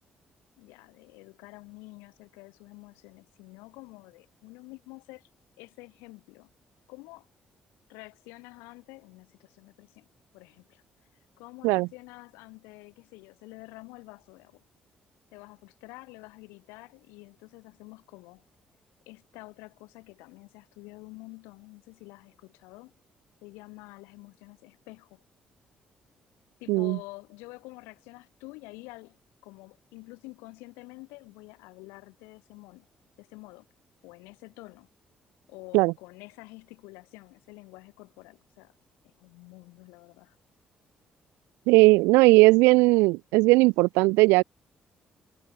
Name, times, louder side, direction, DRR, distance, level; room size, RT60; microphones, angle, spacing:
voice 1, 0.6-5.3 5.6-6.5 6.9-7.3 7.9-10.1 10.3-10.8 11.4-14.6 15.3-18.5 19.1-22.9 23.4-25.2 26.6-29.2 29.4-32.9 33.2-33.7 34.0-34.9 35.5-38.7 39.0-40.4, left 25 dB, 85° left, 7.6 m, -48 dB
voice 2, 26.7-27.0 35.7-35.9 41.7-44.4, right 24 dB, 80° right, 0.3 m, -18 dB
hypercardioid pair, 50°, 4 cm